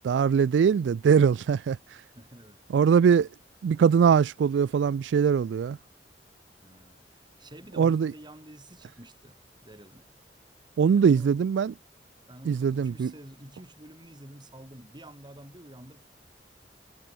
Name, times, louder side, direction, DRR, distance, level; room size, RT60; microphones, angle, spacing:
voice 1, 0.0-1.8 2.7-3.3 3.6-5.8 7.8-8.1 10.8-11.7 12.5-13.1, right 7 dB, 85° right, 0.3 m, -22 dB
voice 2, 2.1-2.6 6.6-10.1 10.9-11.4 12.3-16.1, right 1 dB, 25° right, 3.7 m, -48 dB
head